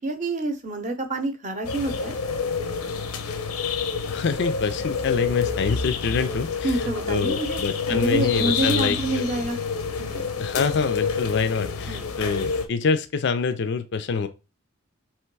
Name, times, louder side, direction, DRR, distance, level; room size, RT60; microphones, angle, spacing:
voice 1, 0.0-2.1 6.6-7.6 7.9-9.6 10.0-10.2 11.9-12.0, right 2 dB, 35° right, 0.7 m, -27 dB
sound 1, 1.6-12.7, left 5 dB, 90° left, 0.7 m, -28 dB
voice 2, 4.1-9.3 10.4-14.3, left 5 dB, 50° left, 0.4 m, -26 dB
3.4 x 2.9 x 4.6 m
head